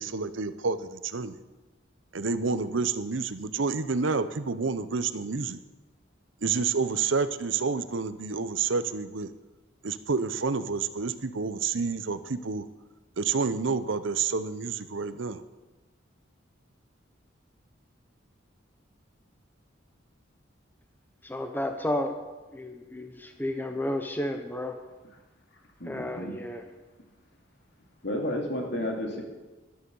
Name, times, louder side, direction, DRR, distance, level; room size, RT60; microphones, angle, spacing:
voice 1, 0.0-1.4 2.1-5.6 6.4-9.3 9.8-12.7 13.2-15.4, right 4 dB, 75° right, 13 dB, 0.7 m, -29 dB
voice 2, 21.2-22.2 22.5-24.8 25.8-26.7, left 1 dB, 10° left, 5 dB, 0.9 m, -32 dB
voice 3, 25.8-26.3 28.0-29.2, left 1 dB, 60° left, 1 dB, 2.6 m, -31 dB
13.0 x 12.0 x 5.5 m, 1.2 s
head